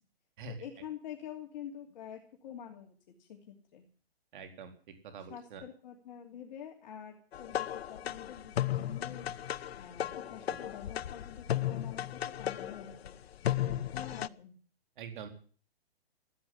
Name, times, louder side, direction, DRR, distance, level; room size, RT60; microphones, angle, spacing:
voice 1, 0.5-3.9 5.2-9.3 9.7-13.2 13.9-14.5, left 9 dB, 45° left, 1 dB, 2.9 m, -47 dB
voice 2, 4.3-4.7 5.0-5.6 15.0-15.3, right 5 dB, 50° right, 6 dB, 4.1 m, -44 dB
sound 1, 7.3-14.3, left 11 dB, 75° left, 0.7 m, -35 dB
15.5 x 9.2 x 10.0 m, 0.43 s
hypercardioid pair, 155°, 31 cm